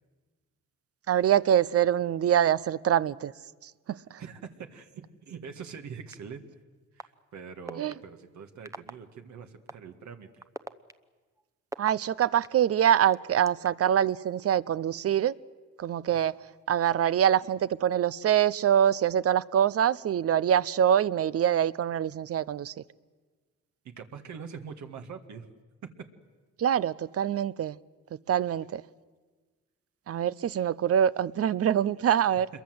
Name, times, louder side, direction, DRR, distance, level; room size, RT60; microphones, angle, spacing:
voice 1, 1.1-3.3 7.7-8.0 11.8-15.3 15.8-16.3 16.7-22.7 26.6-27.8 28.3-28.8 30.1-32.5, right 10 dB, 50° right, 18 dB, 0.7 m, -24 dB
voice 2, 4.2-6.4 6.9-10.4 16.1-16.3 23.8-25.5, right 6 dB, 70° right, 6 dB, 1.9 m, -43 dB
sound 1, 6.1-6.2 7.0-7.1 7.7-7.9 8.7-8.9 9.7-9.8 10.4-12.5 13.1-13.9, right 2 dB, 10° right, 0.9 m, -39 dB
26.5 x 22.5 x 7.9 m, 1.4 s
cardioid pair, 90°, 30 cm